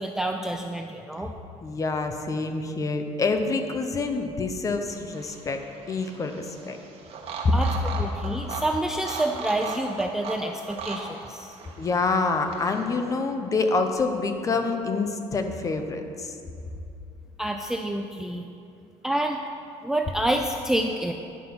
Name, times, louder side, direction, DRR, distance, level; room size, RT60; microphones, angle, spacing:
voice 1, 0.0-1.3 7.5-7.7 8.0-11.6 17.4-18.5 19.0-19.4 19.8-21.1, right 1 dB, 5° right, 3 dB, 0.3 m, -28 dB
voice 2, 1.6-5.6 5.9-6.8 7.4-7.5 11.8-16.4, left 3 dB, 25° left, 6 dB, 0.7 m, -26 dB
sound 1, 4.9-13.0, right 4 dB, 50° right, 1.2 m, -38 dB
9.7 x 5.5 x 5.8 m, 2.7 s
cardioid pair, 140°, 12 cm